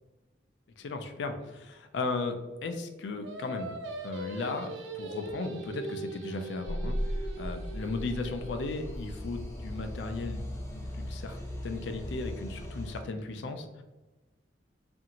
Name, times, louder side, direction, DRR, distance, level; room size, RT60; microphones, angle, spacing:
voice 1, 0.8-2.4 2.6-10.5 10.7-13.8, left 3 dB, 70° left, 7 dB, 0.4 m, -36 dB
Singing, 3.2-8.6, right 2 dB, 80° right, 0.4 m, -41 dB
sound 1, 6.6-13.0, equal, 15° left, 0.6 m, -37 dB
2.6 x 2.4 x 2.8 m, 1.1 s
head